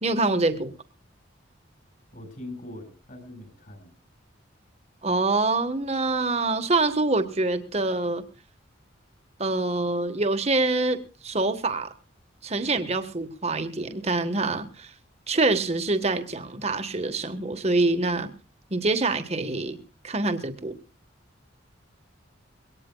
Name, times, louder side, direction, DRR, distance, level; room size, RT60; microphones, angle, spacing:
voice 1, 0.0-0.7 5.0-8.2 9.4-11.9 12.4-14.9 15.3-18.3 18.7-19.8 20.0-20.8, right 2 dB, 35° right, 8 dB, 1.4 m, -25 dB
voice 2, 2.1-3.9, left 1 dB, 45° left, 6 dB, 5.1 m, -41 dB
22.0 x 18.0 x 2.3 m, 0.34 s
head